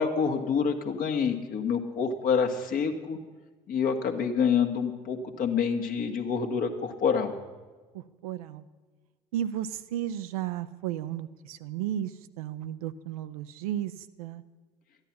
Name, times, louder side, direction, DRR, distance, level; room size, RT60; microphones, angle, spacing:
voice 1, 0.0-3.2 3.7-7.3, left 6 dB, 45° left, 5 dB, 1.5 m, -27 dB
voice 2, 7.9-8.6 9.3-12.1 12.4-13.9 14.2-14.4, right 11 dB, 70° right, 12 dB, 0.6 m, -33 dB
14.0 x 10.5 x 6.0 m, 1.4 s
figure-of-eight pair, 60°, 20 cm